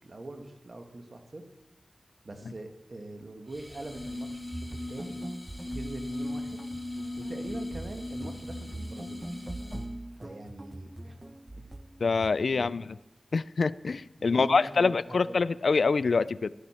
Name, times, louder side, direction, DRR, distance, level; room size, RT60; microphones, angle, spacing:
voice 1, 0.0-1.4 2.2-5.2 5.7-6.6 7.2-9.2 10.1-11.2 12.5-12.7 14.2-15.3, right 2 dB, 60° right, 5 dB, 1.4 m, -43 dB
sound 1, 3.5-10.0, left 1 dB, 15° left, 2.8 m, -38 dB
sound 2, 4.5-12.4, right 1 dB, 20° right, 0.8 m, -42 dB
voice 2, 12.0-12.8 13.3-16.5, left 4 dB, 75° left, 18 dB, 0.3 m, -25 dB
13.0 x 12.5 x 4.3 m, 0.98 s
cardioid pair, 40°, 0 cm